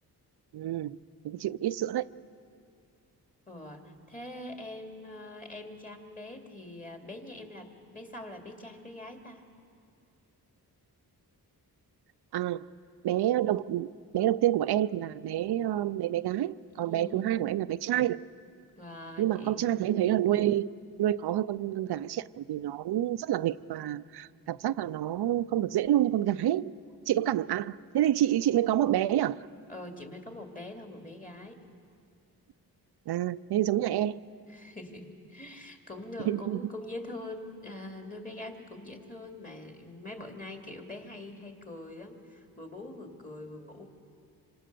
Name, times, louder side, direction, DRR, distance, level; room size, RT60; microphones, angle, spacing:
voice 1, 0.5-1.0 1.2-2.1 12.3-12.7 13.0-13.9 14.1-18.2 19.2-20.7 21.0-26.7 27.1-29.5 33.1-34.2 36.2-36.6, right 12 dB, 90° right, 0.6 m, -28 dB
voice 2, 3.5-9.4 16.8-17.3 18.8-19.6 29.7-31.6 34.5-43.9, left 2 dB, 20° left, 2.5 m, -43 dB
26.5 x 26.0 x 6.8 m
wide cardioid pair, 120°, 38 cm